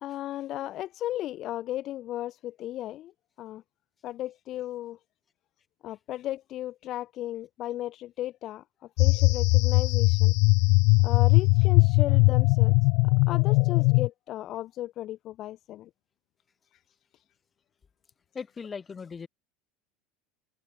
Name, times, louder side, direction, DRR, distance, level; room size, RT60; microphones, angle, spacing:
voice 1, 0.0-3.1 3.4-3.6 4.0-5.0 5.8-8.6 9.0-10.3 11.0-12.8 13.0-15.9, left 14 dB, 45° left, 0.8 m, -35 dB
sound 1, 9.0-14.1, left 33 dB, 65° left, 0.3 m, -20 dB
voice 2, 18.3-19.3, left 5 dB, 20° left, 2.1 m, -38 dB
supercardioid pair, 140°, 0 cm